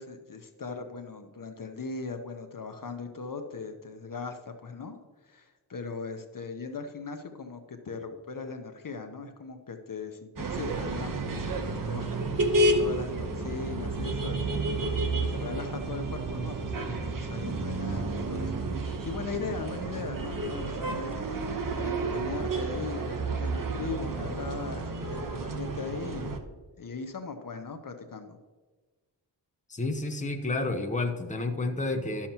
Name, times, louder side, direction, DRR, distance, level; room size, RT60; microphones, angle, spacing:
voice 1, 0.0-5.0 5.2-18.5 18.8-21.2 21.7-28.4, left 4 dB, 50° left, 5 dB, 0.8 m, -39 dB
sound 1, 10.4-26.4, right 2 dB, 50° right, 1.0 m, -31 dB
voice 2, 29.7-32.3, left 2 dB, 20° left, 4 dB, 0.8 m, -30 dB
12.0 x 7.2 x 2.9 m, 1.3 s
wide cardioid pair, 115°, 41 cm